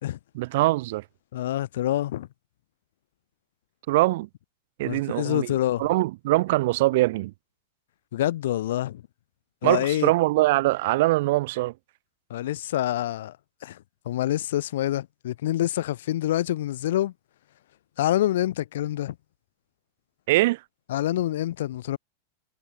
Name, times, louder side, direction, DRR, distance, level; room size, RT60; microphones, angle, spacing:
voice 1, 0.3-1.0 3.9-4.3 4.8-7.3 9.6-11.7 20.3-20.6, right 19 dB, 50° right, 0.7 m, -23 dB
voice 2, 1.3-2.3 4.8-5.9 8.1-9.0 9.6-10.1 12.3-13.4 13.6-13.8 14.1-17.1 18.0-19.2 20.9-22.0, left 13 dB, 60° left, 3.6 m, -26 dB
figure-of-eight pair, 90°, 0 cm